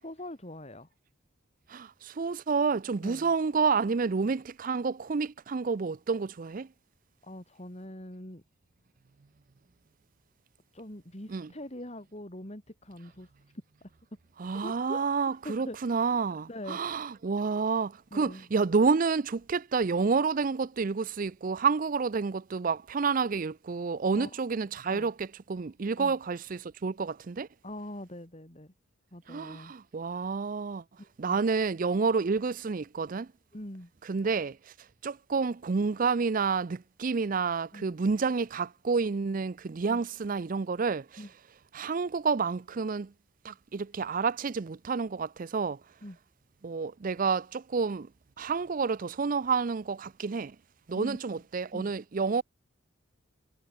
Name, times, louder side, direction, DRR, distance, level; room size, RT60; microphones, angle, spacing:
voice 1, 0.0-0.9 3.0-3.3 7.2-8.4 10.7-13.3 13.8-13.9 14.5-15.1 15.4-15.8 16.5-16.8 18.1-18.5 24.1-24.4 24.9-25.1 26.0-26.2 27.6-28.7 29.1-29.7 31.0-31.4 33.5-33.9 37.7-37.9 39.9-40.0 41.2-41.3 46.0-46.2 50.9-51.2 51.7-51.9, left 1 dB, 35° left, 3.9 m, -43 dB
voice 2, 1.7-6.7 11.3-11.5 14.4-27.5 29.3-30.8 31.2-33.3 34.1-34.6 35.0-41.1 41.7-43.1 43.4-45.8 46.6-48.1 48.4-50.6 50.9-52.4, right 5 dB, 45° right, 0.5 m, -29 dB
head